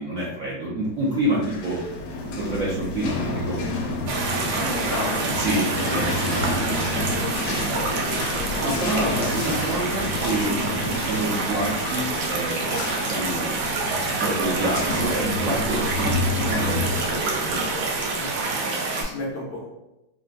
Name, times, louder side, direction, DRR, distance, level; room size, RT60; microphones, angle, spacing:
voice 1, 0.0-1.8 2.4-3.6 4.0-4.1 4.5-4.6 5.3-6.3 8.6-10.5 11.0-13.5 14.2-17.9, right 1 dB, 60° right, -6 dB, 0.9 m, -28 dB
sound 1, 1.2-18.6, left 2 dB, 85° left, 1.3 m, -30 dB
sound 2, 4.1-19.0, right 3 dB, 90° right, 1.4 m, -27 dB
voice 2, 4.4-5.3 6.3-6.5 6.8-7.0 18.1-18.3 18.9-19.6, left 2 dB, 65° left, -5 dB, 1.0 m, -32 dB
3.8 x 2.1 x 2.4 m, 0.95 s
omnidirectional pair, 2.0 m